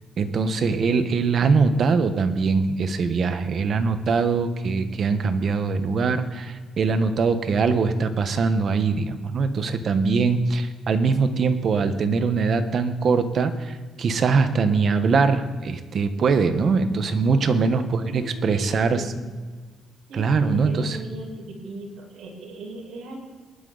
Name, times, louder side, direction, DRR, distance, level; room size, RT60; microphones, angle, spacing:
voice 1, 0.2-19.2 20.2-21.0, right 4 dB, 55° right, 10 dB, 1.3 m, -22 dB
voice 2, 17.2-19.4 20.1-23.2, right 2 dB, 80° right, -3 dB, 5.4 m, -38 dB
19.5 x 12.0 x 4.1 m, 1.4 s
cardioid pair, 90°, 0 cm